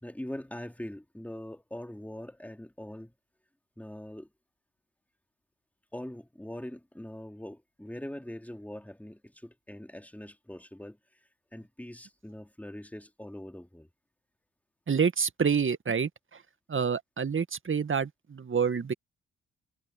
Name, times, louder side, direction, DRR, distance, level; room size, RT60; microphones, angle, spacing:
voice 1, 0.0-3.1 3.8-4.3 5.9-11.0 11.5-13.9, left 1 dB, 5° left, 3.2 m, -42 dB
voice 2, 14.9-16.4 16.7-18.9, right 6 dB, 40° right, 2.1 m, -28 dB
hypercardioid pair, 45°, 33 cm